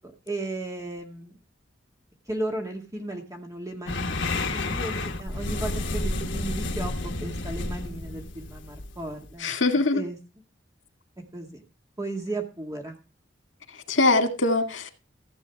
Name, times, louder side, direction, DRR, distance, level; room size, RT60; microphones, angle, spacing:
voice 1, 0.3-1.3 2.3-9.5 9.9-10.2 11.3-11.6 12.0-13.0, right 2 dB, 20° right, 2.0 m, -35 dB
sound 1, 3.9-9.4, left 2 dB, 70° left, 1.3 m, -31 dB
voice 2, 9.4-10.0 13.9-14.9, left 2 dB, 85° left, 2.1 m, -22 dB
15.0 x 8.2 x 3.5 m
head